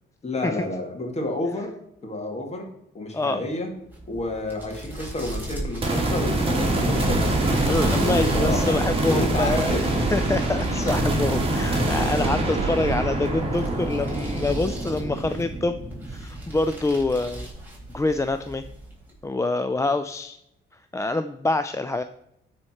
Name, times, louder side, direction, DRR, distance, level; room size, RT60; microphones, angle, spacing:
voice 1, 0.2-1.7 2.0-2.7 2.9-3.7 4.1-7.4 7.9-9.9, left 2 dB, 35° left, 2 dB, 2.4 m, -30 dB
sound 1, 3.8-19.3, right 1 dB, 10° right, 3.9 m, -40 dB
sound 2, 5.8-17.2, right 2 dB, 30° right, 2.5 m, -24 dB
voice 2, 7.7-9.8 10.1-15.8 16.1-17.5 17.9-18.6 19.2-20.4 20.7-22.0, left 2 dB, 15° left, 9 dB, 0.4 m, -26 dB
13.0 x 4.3 x 4.5 m, 0.81 s
cardioid pair, 90°, 20 cm